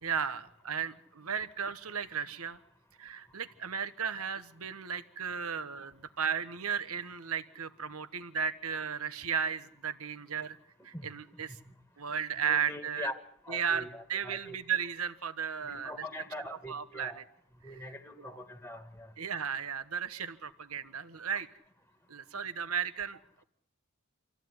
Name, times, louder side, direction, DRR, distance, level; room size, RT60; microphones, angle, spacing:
voice 1, 0.0-2.6 3.0-10.6 10.8-11.6 12.0-13.1 13.5-15.9 16.7-17.2 17.7-17.8 18.2-18.4 19.2-21.5 22.1-23.4, right 7 dB, 85° right, 12 dB, 1.3 m, -35 dB
voice 2, 12.4-13.2 13.4-14.6 15.7-17.2 17.6-19.1, left 1 dB, 10° left, 8 dB, 1.6 m, -43 dB
27.0 x 15.0 x 9.7 m, 0.70 s
head